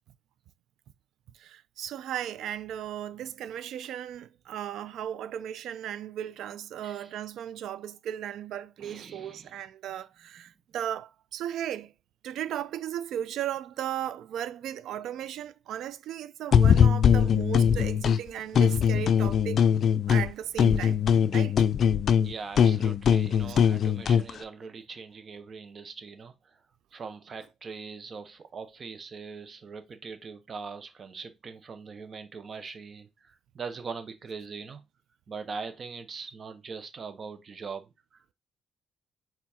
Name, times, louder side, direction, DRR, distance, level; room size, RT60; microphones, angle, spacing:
voice 1, 1.4-11.9 12.2-19.6 20.1-21.0 21.3-21.6 23.5-23.6, right 10 dB, 80° right, 0.4 m, -36 dB
voice 2, 8.8-9.6 22.2-26.6 26.9-34.8 35.3-38.2, right 5 dB, 45° right, 0.9 m, -41 dB
sound 1, 16.5-18.2 18.5-20.3 20.6-24.3, left 7 dB, 60° left, 0.4 m, -21 dB
4.5 x 3.9 x 2.8 m
cardioid pair, 90°, 0 cm